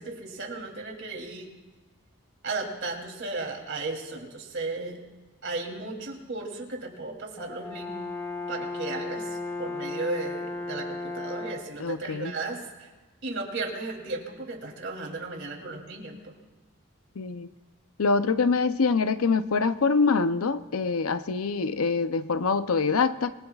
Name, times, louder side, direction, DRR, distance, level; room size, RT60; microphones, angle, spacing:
voice 1, 0.0-1.5 2.4-5.0 5.4-8.0 8.5-12.9 13.2-16.3, right 3 dB, 55° right, 1 dB, 3.1 m, -35 dB
Brass instrument, 7.4-11.8, left 2 dB, 10° left, 1.1 m, -35 dB
voice 2, 11.8-12.3 17.2-17.5 18.0-23.3, left 4 dB, 85° left, 11 dB, 0.7 m, -25 dB
26.5 x 21.0 x 2.4 m, 1.2 s
head